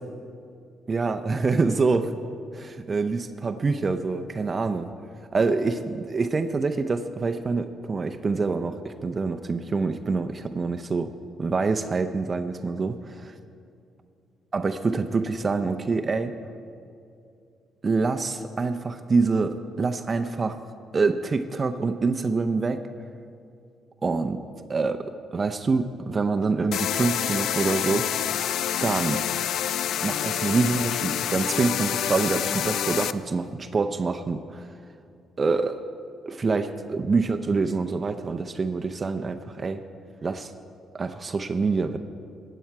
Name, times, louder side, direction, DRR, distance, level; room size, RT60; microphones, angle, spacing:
voice 1, 0.9-2.2 2.5-4.9 5.3-11.1 11.4-13.3 14.5-16.3 17.8-20.6 20.9-22.8 24.0-24.4 24.7-25.1 25.3-28.0 28.8-29.2 30.0-34.7 35.4-35.8 36.3-39.8 40.2-40.5 40.9-42.0, right 4 dB, 35° right, 8 dB, 0.6 m, -26 dB
sound 1, 26.7-33.1, left 10 dB, 75° left, 0.3 m, -27 dB
15.5 x 9.2 x 4.7 m, 2.4 s
cardioid pair, 90°, 0 cm